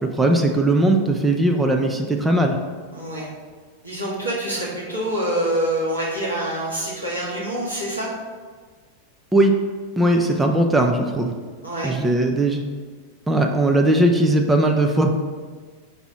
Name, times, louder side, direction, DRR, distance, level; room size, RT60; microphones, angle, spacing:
voice 1, 0.0-2.6 9.3-9.5 10.0-11.3 11.8-12.6 13.3-15.1, right 1 dB, 10° right, 3 dB, 0.5 m, -19 dB
voice 2, 2.9-3.3 3.8-8.1 10.2-10.4 11.6-11.9, right 1 dB, 80° right, -6 dB, 1.8 m, -26 dB
5.8 x 5.3 x 3.0 m, 1.5 s
figure-of-eight pair, 90°, 0 cm